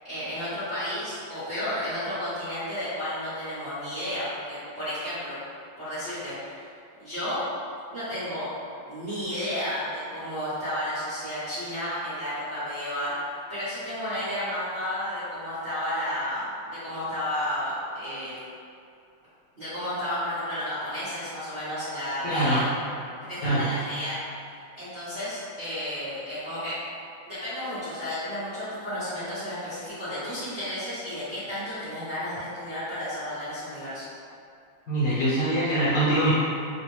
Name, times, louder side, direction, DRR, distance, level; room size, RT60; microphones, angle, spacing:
voice 1, 0.1-5.4 5.8-6.7 7.0-7.4 7.9-8.5 8.9-13.1 13.5-18.4 19.5-22.7 23.2-24.2 24.8-26.8 27.3-34.1, left 1 dB, 35° right, -16 dB, 1.0 m, -32 dB
voice 2, 22.2-22.6 23.4-23.6 34.9-36.3, right 1 dB, 55° left, -10 dB, 1.4 m, -23 dB
3.5 x 2.6 x 3.0 m, 2.5 s
omnidirectional pair, 2.4 m